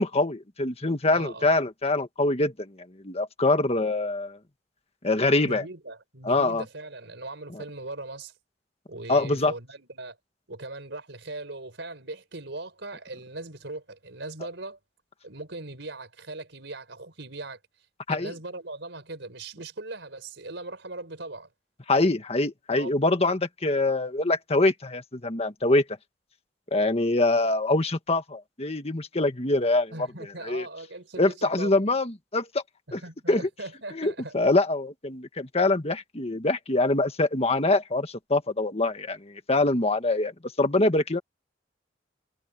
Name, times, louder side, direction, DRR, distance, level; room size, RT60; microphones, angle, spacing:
voice 1, 0.0-2.7 3.0-4.4 5.0-5.6 6.2-6.6 9.1-9.5 18.1-18.3 21.9-25.8 26.7-29.9 30.4-30.6 31.2-32.6 32.9-33.0 33.3-33.5 33.9-40.3 40.6-41.2, left 2 dB, 35° left, 1.7 m, -24 dB
voice 2, 1.1-1.5 5.4-8.3 8.9-10.2 10.5-14.8 15.2-17.6 18.1-21.5 22.7-23.1 29.9-31.7 32.9-34.3, right 2 dB, 70° right, 4.8 m, -39 dB
head